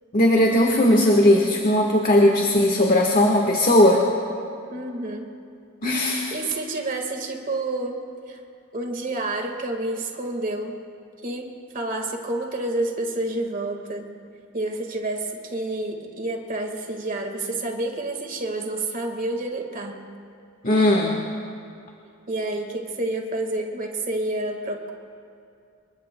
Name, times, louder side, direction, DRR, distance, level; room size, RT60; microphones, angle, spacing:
voice 1, 0.1-4.0 5.8-6.3 20.6-21.2, left 1 dB, 40° left, 0 dB, 1.3 m, -18 dB
voice 2, 4.7-5.3 6.3-8.0 8.3-8.4 8.7-10.8 11.2-14.1 14.5-20.0 22.3-24.9, right 2 dB, 40° right, 3 dB, 1.7 m, -29 dB
27.0 x 22.5 x 2.2 m, 2.5 s
head